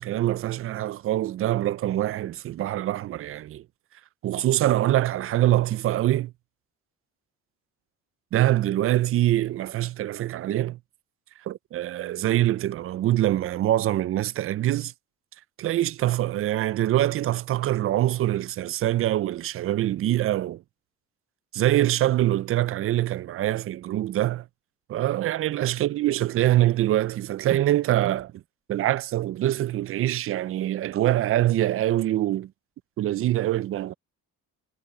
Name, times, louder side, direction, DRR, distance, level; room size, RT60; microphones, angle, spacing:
voice 1, 0.0-3.6 4.2-6.3 8.3-10.8 11.5-14.9 15.6-20.6 21.5-24.4 24.9-28.4 28.7-32.5 33.0-33.9, right 14 dB, 45° right, 0.4 m, -24 dB
cardioid pair, 150°, 33 cm